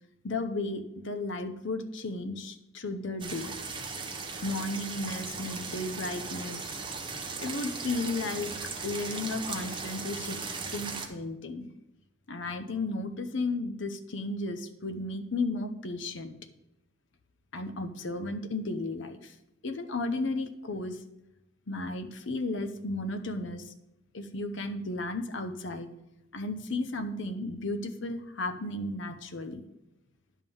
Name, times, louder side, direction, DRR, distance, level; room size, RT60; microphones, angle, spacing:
voice 1, 0.2-3.5 4.4-6.7 7.4-10.4 10.7-11.7 12.3-16.3 17.5-19.3 19.6-21.0 21.7-23.7 24.1-25.9 26.3-29.6, left 2 dB, 60° left, 8 dB, 0.7 m, -34 dB
sound 1, 3.2-11.1, right 4 dB, 25° right, 0.7 m, -37 dB
10.5 x 3.7 x 6.9 m, 0.89 s
head